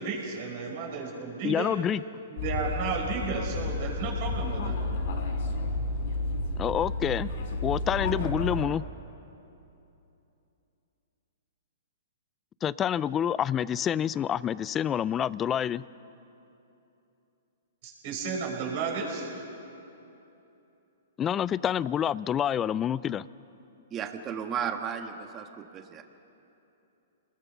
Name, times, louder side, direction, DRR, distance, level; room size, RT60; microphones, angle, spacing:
voice 1, 0.0-1.7 2.3-4.7 17.8-19.3, right 5 dB, 50° right, 0 dB, 5.8 m, -33 dB
voice 2, 1.4-2.0 6.6-7.3 7.6-8.8 12.6-15.8 21.2-23.2, left 9 dB, 20° left, 20 dB, 0.4 m, -27 dB
sound 1, 2.4-8.6, left 2 dB, 60° left, 3.9 m, -31 dB
voice 3, 23.9-26.0, right 7 dB, 25° right, 6 dB, 1.4 m, -34 dB
28.5 x 20.5 x 5.8 m, 2.9 s
hypercardioid pair, 135°, 0 cm